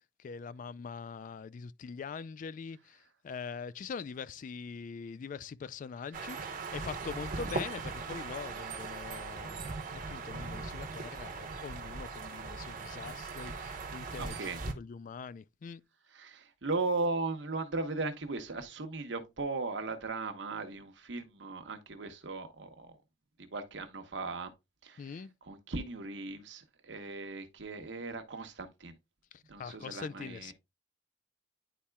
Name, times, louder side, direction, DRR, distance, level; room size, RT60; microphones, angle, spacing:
voice 1, 0.2-15.8 25.0-25.3 29.3-30.5, left 5 dB, 45° left, 0.3 m, -43 dB
sound 1, 6.1-14.7, right 4 dB, 45° right, 1.0 m, -39 dB
voice 2, 14.2-14.6 16.1-23.0 23.4-24.5 24.8-28.9 29.5-30.5, right 3 dB, 70° right, 1.1 m, -37 dB
10.0 x 4.2 x 2.3 m
head